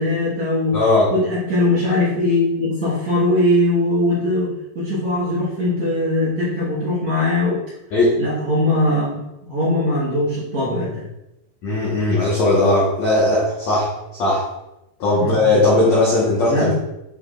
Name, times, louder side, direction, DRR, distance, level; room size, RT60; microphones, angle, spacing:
voice 1, 0.0-0.8 1.1-7.6 8.2-9.2 9.4-11.1 15.2-15.6 16.5-16.7, left 1 dB, 65° right, -8 dB, 1.9 m, -20 dB
voice 2, 0.7-1.1 7.9-8.2 11.6-13.9 14.2-14.4 15.0-16.7, left 2 dB, 75° left, -5 dB, 1.6 m, -17 dB
11.0 x 4.9 x 2.5 m, 0.90 s
omnidirectional pair, 5.3 m